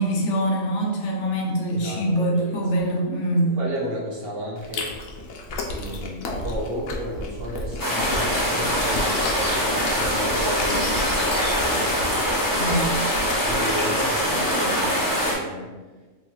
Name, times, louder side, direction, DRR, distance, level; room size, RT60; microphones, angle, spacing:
voice 1, 0.0-3.5 12.6-13.0, right 1 dB, 65° left, -1 dB, 0.9 m, -23 dB
voice 2, 1.7-3.0 3.5-4.9 5.7-12.8 13.4-15.7, equal, 55° right, -4 dB, 0.7 m, -34 dB
Chewing mastication, 4.6-13.8, left 2 dB, 90° left, 1.0 m, -33 dB
sound 1, 7.8-15.3, equal, 20° left, 0.6 m, -23 dB
4.2 x 3.0 x 2.3 m, 1.3 s
omnidirectional pair, 1.4 m